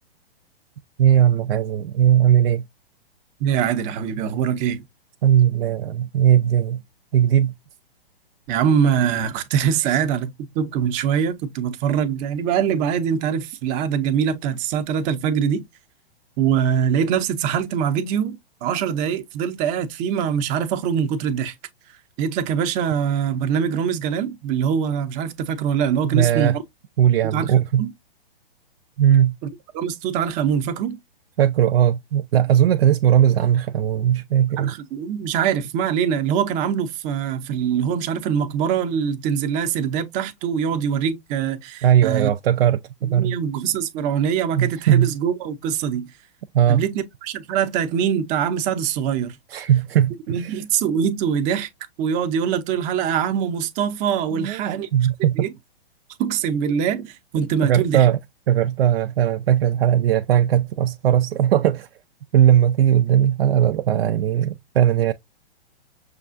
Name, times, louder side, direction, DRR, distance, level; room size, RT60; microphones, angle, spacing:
voice 1, 1.0-2.6 5.2-6.8 7.1-7.5 9.8-10.0 26.0-26.6 27.0-27.9 29.0-29.4 31.4-34.7 41.8-43.3 44.6-45.1 46.5-46.8 49.5-50.6 54.3-55.5 57.6-58.2 58.5-61.9 62.3-65.1, right 10 dB, 70° right, 0.5 m, -18 dB
voice 2, 3.4-4.8 8.5-15.6 16.4-21.5 22.2-26.6 27.3-27.5 27.8-27.9 29.7-31.0 34.6-42.3 43.0-46.1 46.7-49.4 50.3-51.7 52.0-54.9 55.2-55.5 56.2-58.1, right 8 dB, 25° right, 0.6 m, -23 dB
6.4 x 2.4 x 2.5 m
hypercardioid pair, 130°, 31 cm